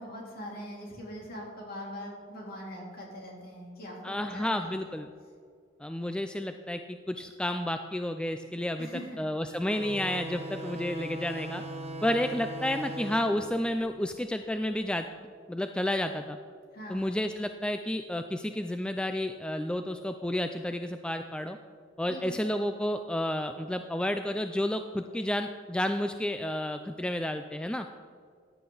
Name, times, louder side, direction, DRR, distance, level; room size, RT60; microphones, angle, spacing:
voice 1, 0.0-5.0 8.8-9.2 16.7-17.1 22.1-22.5, equal, 50° left, -2 dB, 3.3 m, -42 dB
voice 2, 4.0-5.1 5.8-8.9 9.2-11.6 12.0-16.4 16.9-21.6 22.0-27.9, left 1 dB, 5° left, 7 dB, 0.3 m, -31 dB
sound 1, 9.6-14.8, right 1 dB, 35° right, 1.2 m, -40 dB
15.0 x 10.0 x 4.0 m, 2.1 s
head